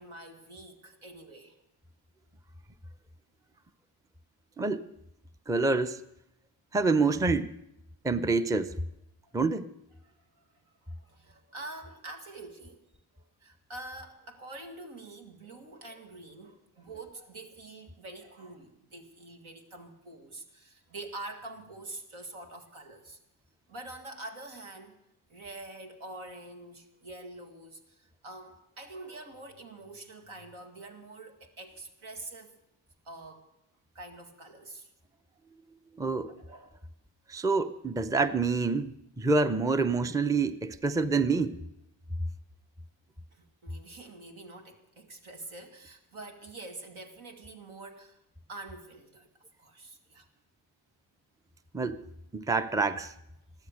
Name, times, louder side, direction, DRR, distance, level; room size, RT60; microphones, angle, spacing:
voice 1, 0.0-1.6 9.3-9.4 10.0-12.8 13.1-23.2 23.7-25.0 25.3-32.5 33.0-33.5 33.9-34.9 36.2-36.8 43.3-48.2 48.5-49.3 49.6-50.3, right 2 dB, 75° right, 2.2 m, -46 dB
voice 2, 5.5-6.0 6.7-7.5 8.0-8.8 9.3-9.7 36.0-36.3 37.3-41.6 51.7-52.0 52.3-53.1, right 3 dB, 5° right, 0.6 m, -27 dB
14.0 x 13.0 x 6.5 m
supercardioid pair, 45°, 50 cm